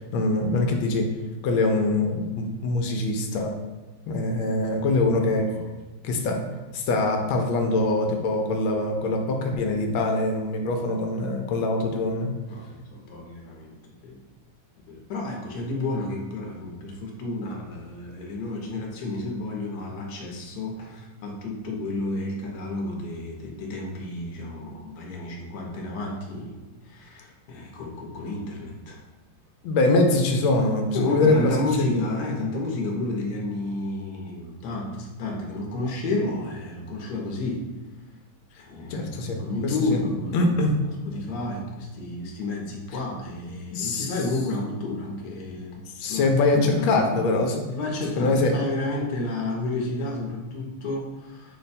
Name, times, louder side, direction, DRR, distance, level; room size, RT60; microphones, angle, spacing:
voice 1, 0.1-1.1 1.4-3.6 4.1-5.5 6.0-6.4 6.7-12.3 29.6-31.5 38.9-40.0 40.3-40.7 43.7-44.1 46.0-47.6 48.2-48.5, left 2 dB, 80° left, 3 dB, 1.3 m, -23 dB
voice 2, 12.5-13.8 14.0-14.2 14.9-29.0 30.9-37.7 38.6-45.8 46.1-47.0 47.7-51.6, left 2 dB, 60° left, -1 dB, 1.2 m, -31 dB
5.0 x 2.2 x 4.1 m, 1.2 s
omnidirectional pair, 2.3 m